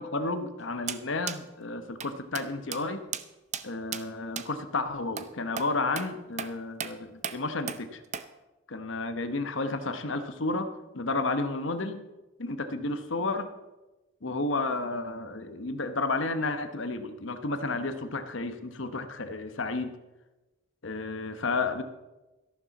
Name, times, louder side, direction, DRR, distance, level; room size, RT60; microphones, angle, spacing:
voice 1, 0.0-3.0 3.6-8.0 8.7-12.1 12.4-13.5 14.2-19.9 20.8-21.8, left 3 dB, 65° left, 9 dB, 1.0 m, -32 dB
sound 1, 0.9-1.0 1.3-1.4 2.0-2.1 2.3-2.5 2.7-2.8 3.1-3.2 3.5-3.7 3.9-4.0 4.4-4.5 5.2-5.3 5.6-5.7 6.0-6.1 6.4-6.5 6.8-6.9 7.2-7.4 7.7-7.8 8.1-8.3, right 8 dB, 35° right, 0.5 m, -35 dB
13.5 x 11.5 x 4.1 m, 1.1 s
head